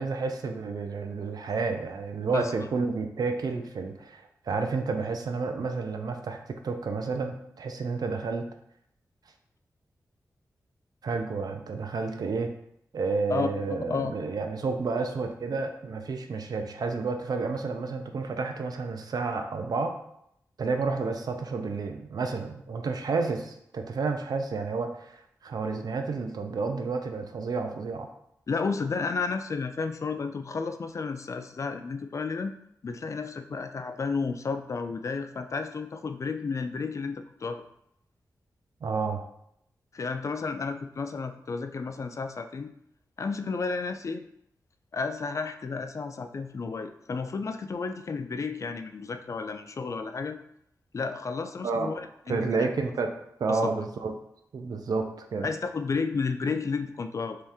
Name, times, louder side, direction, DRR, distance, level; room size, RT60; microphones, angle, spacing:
voice 1, 0.0-6.4 6.6-8.4 11.0-12.5 12.9-19.9 20.6-28.1 38.8-39.2 51.6-51.9 52.3-53.1 53.4-54.1 54.5-55.5, right 4 dB, 70° right, 5 dB, 0.5 m, -30 dB
voice 2, 13.3-14.1 28.5-32.5 32.8-37.6 39.9-42.7 43.2-44.2 44.9-50.4 50.9-52.7 53.5-53.7 55.4-57.4, left 4 dB, 50° left, 8 dB, 0.3 m, -32 dB
3.1 x 2.8 x 3.5 m, 0.74 s
cardioid pair, 60°, 7 cm